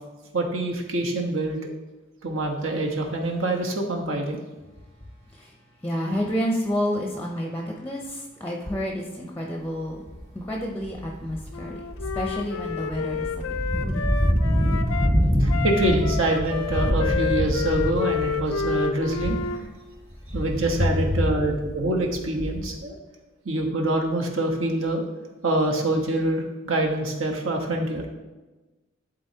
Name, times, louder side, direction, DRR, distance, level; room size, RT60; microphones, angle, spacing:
voice 1, 0.3-1.6 2.2-4.4 15.4-19.4 20.3-22.9 23.4-25.0 25.4-28.0, right 2 dB, 70° right, 1 dB, 1.1 m, -25 dB
voice 2, 5.8-10.1 10.3-11.8 12.1-14.1 20.8-21.2, left 1 dB, 10° left, 0 dB, 0.6 m, -29 dB
sound 1, 10.1-10.4 10.8-19.6 20.0-22.8, equal, 35° right, 1.6 m, -26 dB
Wind instrument woodwind instrument, 11.5-15.1 15.5-19.6, left 6 dB, 90° left, 0.4 m, -30 dB
11.0 x 4.1 x 2.8 m, 1.2 s
head